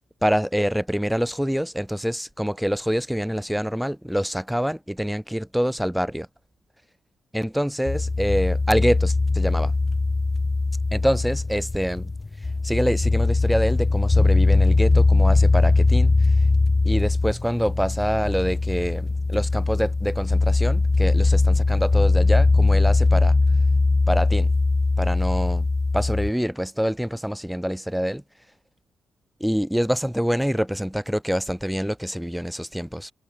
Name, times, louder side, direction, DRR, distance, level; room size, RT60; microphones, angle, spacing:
voice 1, 0.2-6.3 7.3-9.7 10.9-12.1 12.6-16.1 16.8-23.4 24.1-24.5 25.0-25.7 25.9-28.2 29.4-33.1, equal, ahead, 3.8 m, -25 dB
sound 1, 7.9-26.3, left 3 dB, 20° left, 2.1 m, -20 dB
cardioid pair, 120°, 0 cm